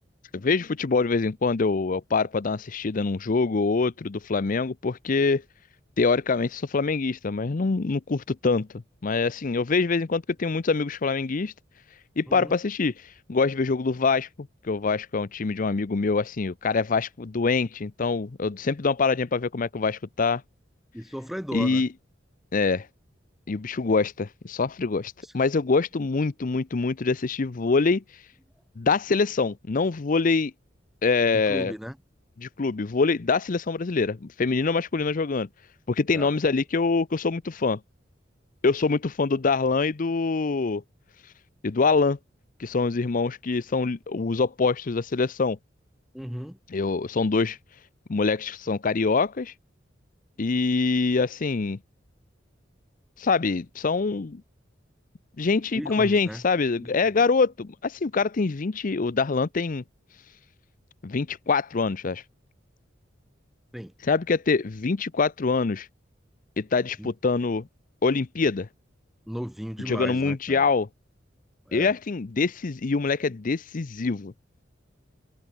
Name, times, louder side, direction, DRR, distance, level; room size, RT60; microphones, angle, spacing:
voice 1, 0.3-5.4 6.0-8.7 9.0-11.5 12.2-14.3 14.6-20.4 21.5-21.9 22.5-22.9 23.5-28.2 28.8-30.5 31.0-31.7 32.4-35.5 35.9-37.8 38.6-40.8 41.6-42.2 42.6-45.6 46.7-47.6 48.1-49.5 50.4-51.8 53.2-54.4 55.4-59.8 61.0-62.2 64.0-65.9 66.6-67.6 68.0-68.7 69.8-70.9 71.7-74.3, left 4 dB, 45° left, 0.6 m, -25 dB
voice 2, 12.3-12.6 20.9-21.9 31.3-31.9 36.1-36.3 46.1-46.6 55.7-56.4 56.8-56.9 63.7-63.9 67.0-67.1 69.3-70.6 71.7-71.9, equal, ahead, 0.7 m, -35 dB
head